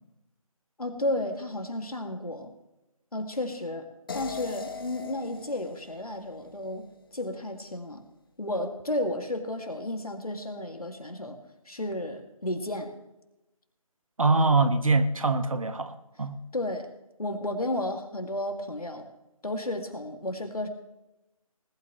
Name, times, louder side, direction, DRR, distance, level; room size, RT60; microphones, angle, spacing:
voice 1, 0.8-2.5 3.1-3.9 4.1-8.0 8.4-11.4 11.7-12.9 16.5-16.9 17.2-19.1 19.4-20.7, left 1 dB, 80° left, 2.4 m, -32 dB
sound 1, 4.1-7.2, left 5 dB, 40° left, 1.1 m, -41 dB
voice 2, 14.2-16.4, right 3 dB, 65° right, 1.3 m, -24 dB
20.0 x 12.0 x 3.2 m
figure-of-eight pair, 155°, 18 cm